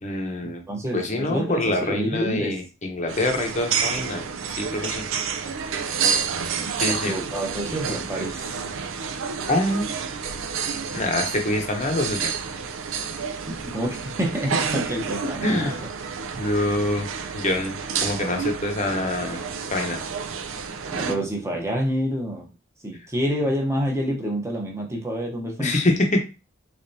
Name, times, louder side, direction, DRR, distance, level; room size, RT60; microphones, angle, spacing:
voice 1, 0.0-0.6 0.9-4.2 4.5-5.0 6.8-7.1 9.5-9.9 10.9-12.3 15.4-15.8 16.4-17.1 17.3-19.4 19.7-20.0 25.6-26.2, left 1 dB, 35° left, 3 dB, 0.8 m, -25 dB
voice 2, 0.7-2.6 6.6-8.6 13.5-15.9 20.9-22.5 22.8-25.7, equal, 15° right, 0 dB, 0.8 m, -28 dB
sound 1, 3.1-21.1, right 6 dB, 70° right, 0.5 m, -29 dB
3.5 x 3.4 x 2.7 m, 0.30 s
head